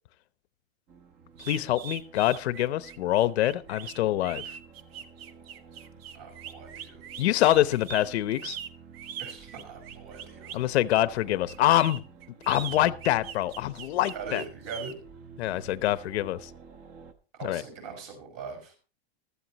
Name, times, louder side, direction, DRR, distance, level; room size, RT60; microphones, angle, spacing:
sound 1, 0.9-17.1, right 5 dB, 25° right, 1.0 m, -51 dB
sound 2, 1.4-10.7 11.5-14.9, right 9 dB, 70° right, 1.3 m, -41 dB
voice 1, 1.5-4.4 7.2-8.6 10.5-12.0 12.5-14.4 15.4-16.5 17.4-17.6, left 14 dB, 90° left, 0.9 m, -25 dB
voice 2, 6.1-7.0 9.2-10.8 14.1-15.0 17.3-18.7, right 4 dB, 45° right, 5.2 m, -41 dB
15.5 x 13.0 x 2.9 m
supercardioid pair, 175°, 32 cm